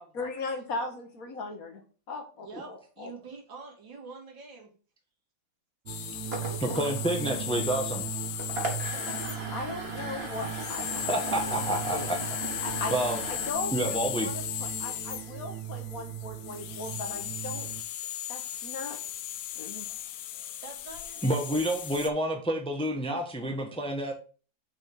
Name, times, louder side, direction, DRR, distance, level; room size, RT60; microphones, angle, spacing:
voice 1, 0.1-1.8 2.1-3.1 9.5-12.1 12.6-13.0 13.3-17.7 18.3-19.0 19.5-19.9, left 3 dB, 55° left, 4 dB, 1.5 m, -38 dB
voice 2, 3.0-4.7 6.4-7.0 8.5-9.5 20.4-21.5, right 4 dB, 90° right, -2 dB, 2.8 m, -45 dB
sound 1, 5.9-22.1, left 12 dB, 75° left, 1.2 m, -37 dB
sound 2, 5.9-17.8, right 12 dB, 60° right, 1.3 m, -39 dB
sound 3, 6.1-13.5, right 2 dB, 35° right, 1.6 m, -39 dB
voice 3, 6.6-8.0 11.1-12.2 12.9-13.2 13.7-14.3 21.2-24.1, right 1 dB, 5° left, 2 dB, 0.8 m, -29 dB
6.3 x 3.5 x 6.1 m, 0.38 s
omnidirectional pair, 2.0 m